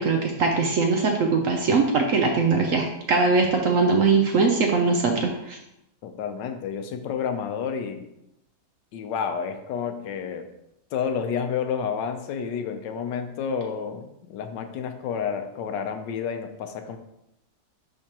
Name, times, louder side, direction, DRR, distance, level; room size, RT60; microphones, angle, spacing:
voice 1, 0.0-5.6, right 4 dB, 65° right, 2 dB, 0.8 m, -21 dB
voice 2, 6.0-8.1 8.9-10.5 10.9-17.0, left 7 dB, 80° left, 7 dB, 1.3 m, -30 dB
9.8 x 3.4 x 2.9 m, 0.84 s
omnidirectional pair, 1.9 m